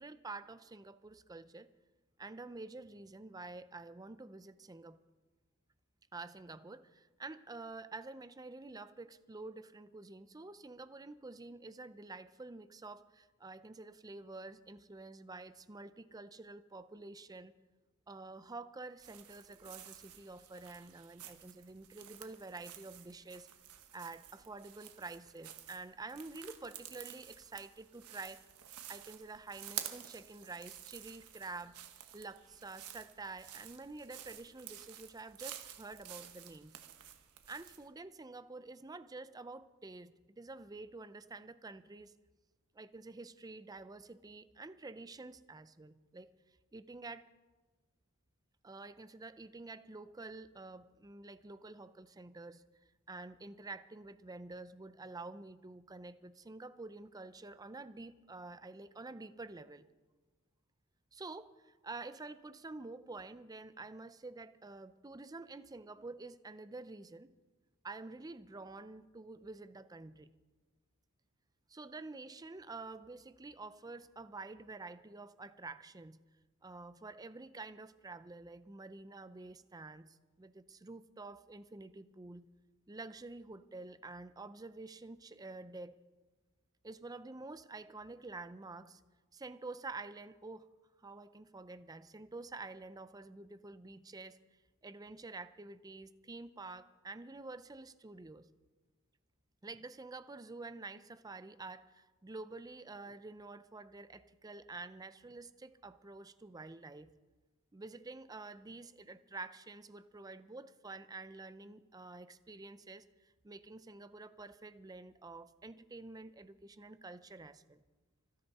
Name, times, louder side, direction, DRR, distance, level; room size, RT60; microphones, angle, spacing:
voice 1, 0.0-1.7 2.2-5.0 6.1-17.5 18.1-23.5 23.9-28.4 28.9-31.8 32.1-36.8 37.5-42.1 42.7-46.3 46.7-47.3 48.6-52.6 53.1-59.9 61.1-67.3 67.8-70.3 71.7-76.2 76.6-82.5 82.9-85.9 86.8-89.0 89.3-90.7 91.0-94.4 94.8-98.5 99.6-107.1 107.7-117.8, right 3 dB, 15° right, 14 dB, 0.5 m, -48 dB
sound 1, 19.0-37.9, right 11 dB, 90° right, 1.3 m, -51 dB
25.5 x 10.5 x 4.2 m, 1.2 s
head